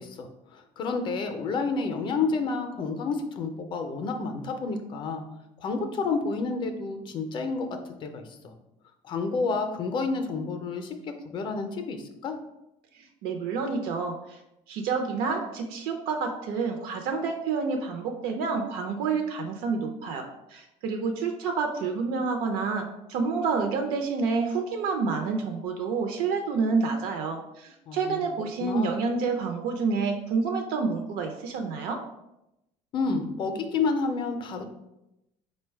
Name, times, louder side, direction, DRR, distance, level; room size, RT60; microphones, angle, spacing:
voice 1, 0.0-5.2 5.6-7.7 8.0-8.3 9.0-10.9 11.2-12.3 27.9-28.2 28.6-29.0 32.9-34.7, left 4 dB, 35° left, 5 dB, 0.4 m, -30 dB
voice 2, 12.9-14.4 14.7-32.0, right 4 dB, 80° right, 4 dB, 0.5 m, -28 dB
4.7 x 2.2 x 4.5 m, 0.89 s
cardioid pair, 175°, 15 cm